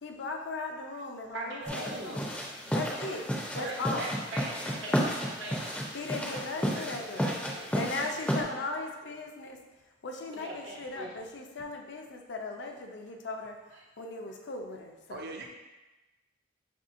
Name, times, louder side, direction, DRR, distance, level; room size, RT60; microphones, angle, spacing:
voice 1, 0.0-2.3 2.6-3.3 3.5-4.1 5.9-7.4 7.7-9.6 10.0-13.6 14.0-15.5, left 3 dB, 65° left, 2 dB, 0.5 m, -38 dB
voice 2, 1.3-2.3 3.5-5.8 10.3-11.1 13.7-13.8, right 1 dB, 85° right, -3 dB, 0.9 m, -40 dB
sound 1, 1.7-8.4, equal, 5° left, 0.4 m, -32 dB
voice 3, 6.5-7.7 8.2-8.7 15.1-15.5, right 2 dB, 55° right, 2 dB, 0.5 m, -45 dB
5.4 x 2.7 x 2.5 m, 1.1 s
head